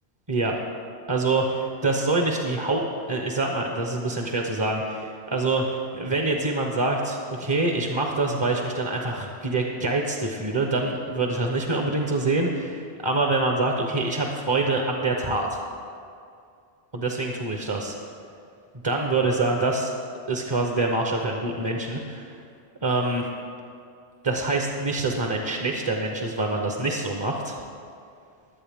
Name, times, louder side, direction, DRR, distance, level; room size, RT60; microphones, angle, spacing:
voice 1, 0.3-0.6 1.1-15.6 16.9-18.0 18.8-19.9 20.3-22.4 22.8-23.3 24.2-27.6, right 2 dB, 30° right, 1 dB, 0.8 m, -25 dB
20.0 x 8.1 x 3.6 m, 2.4 s
omnidirectional pair, 1.1 m